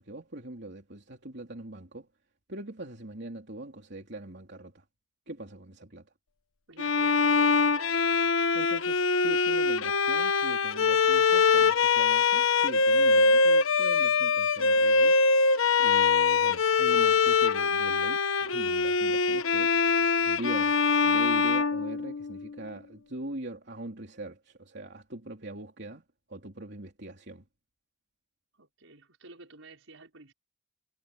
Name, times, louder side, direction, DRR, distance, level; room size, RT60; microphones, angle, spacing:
voice 1, 0.0-2.1 2.5-4.8 5.3-6.0 8.5-15.2 15.8-19.8 20.2-20.8 21.0-26.0 26.3-27.4, right 1 dB, 55° right, 3.4 m, -42 dB
voice 2, 6.7-7.8 28.6-30.3, right 2 dB, 75° right, 5.6 m, -50 dB
Bowed string instrument, 6.8-22.5, left 4 dB, 85° left, 1.2 m, -23 dB
head